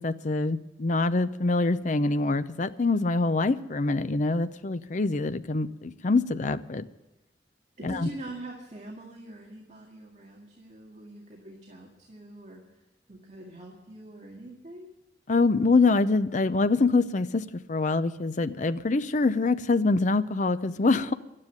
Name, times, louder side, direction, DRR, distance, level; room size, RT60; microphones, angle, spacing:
voice 1, 0.0-6.9 7.8-8.1 15.3-21.1, left 3 dB, 45° left, 12 dB, 0.6 m, -25 dB
voice 2, 7.8-12.6 13.1-14.9, right 1 dB, 40° right, -1 dB, 2.0 m, -43 dB
12.0 x 9.8 x 9.1 m, 0.95 s
head